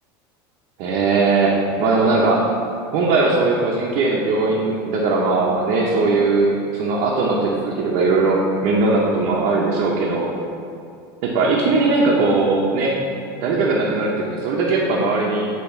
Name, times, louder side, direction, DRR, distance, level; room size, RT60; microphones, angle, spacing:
voice 1, 0.8-2.5 2.9-10.3 11.2-13.0 13.4-15.5, right 3 dB, 60° right, -4 dB, 0.9 m, -19 dB
8.7 x 3.1 x 4.5 m, 2.4 s
supercardioid pair, 115°, 14 cm